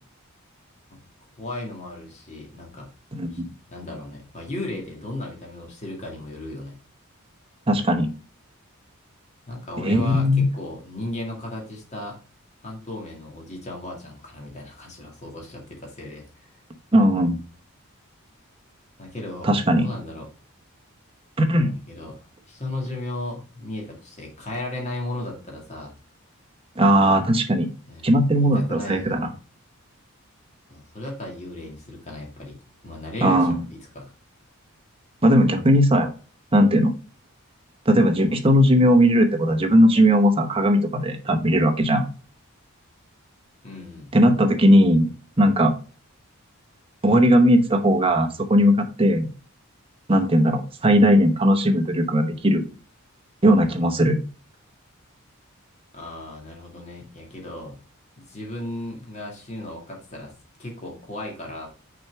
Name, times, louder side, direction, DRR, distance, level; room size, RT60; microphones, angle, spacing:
voice 1, 1.4-2.9 3.3-3.4 3.7-6.8 9.5-12.2 12.6-16.6 19.0-19.5 19.7-20.3 21.9-25.9 27.9-28.1 28.5-29.2 30.7-32.6 32.8-34.1 43.6-44.1 55.9-57.8 58.3-60.3 60.6-61.7, left 1 dB, 30° left, 0 dB, 2.0 m, -35 dB
voice 2, 3.1-3.5 7.7-8.1 9.8-10.5 16.9-17.4 19.4-19.9 21.4-21.7 26.8-27.7 28.0-29.3 33.2-33.6 35.2-36.1 36.5-36.9 37.9-42.1 44.1-45.1 45.4-45.7 47.0-49.3 50.1-52.6 53.4-54.2, equal, 25° right, 6 dB, 0.9 m, -18 dB
6.3 x 4.4 x 3.5 m, 0.36 s
head